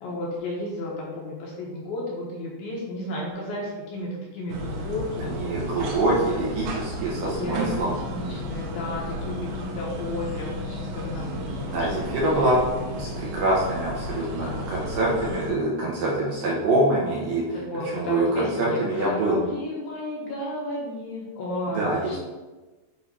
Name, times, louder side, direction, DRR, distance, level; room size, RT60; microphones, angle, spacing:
voice 1, 0.0-5.4 6.1-6.4 7.4-11.9 12.2-12.3 14.4-14.9 17.5-22.2, left 1 dB, 70° left, -4 dB, 2.6 m, -33 dB
sound 1, 4.5-15.5, equal, 85° right, 3.4 m, -33 dB
voice 2, 5.2-7.9 11.7-12.6 13.0-17.4 17.9-19.4 21.7-22.1, right 1 dB, 65° right, -5 dB, 2.4 m, -25 dB
8.6 x 3.0 x 5.4 m, 1.2 s
omnidirectional pair, 5.1 m